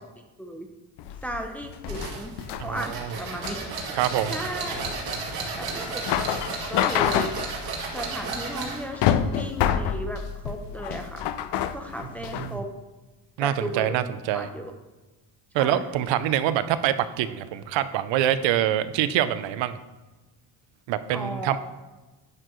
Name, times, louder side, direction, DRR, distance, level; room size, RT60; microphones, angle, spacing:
sound 1, 1.0-12.6, left 10 dB, 70° left, 0.6 m, -28 dB
voice 1, 1.2-2.3 2.6-4.0 4.3-5.0 5.6-7.3 7.9-11.3 11.7-12.7 13.4-14.7 15.5-15.8 21.1-21.6, right 1 dB, 5° left, 3 dB, 0.6 m, -35 dB
sound 2, 1.9-8.9, right 4 dB, 55° right, 2.0 m, -33 dB
voice 2, 2.6-3.1 3.9-4.3 12.3-12.6 13.4-14.5 15.5-19.8 20.9-21.6, right 11 dB, 85° right, 13 dB, 0.6 m, -25 dB
10.5 x 6.7 x 3.1 m, 1.2 s
cardioid pair, 150°, 43 cm